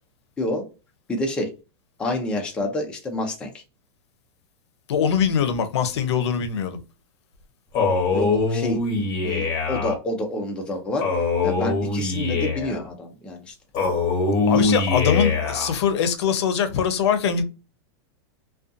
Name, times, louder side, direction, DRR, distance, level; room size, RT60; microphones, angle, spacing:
voice 1, 1.1-1.5 2.0-3.6 8.1-8.8 9.2-11.1 11.4-13.5 14.5-14.6, left 1 dB, 5° left, 0.4 m, -28 dB
voice 2, 4.9-6.8 14.5-17.4, left 7 dB, 80° left, 0.6 m, -22 dB
Male speech man speaking, 7.7-10.0 11.0-12.8 13.7-15.7, left 4 dB, 30° left, 0.9 m, -23 dB
2.5 x 2.3 x 2.5 m
supercardioid pair, 160°, 14 cm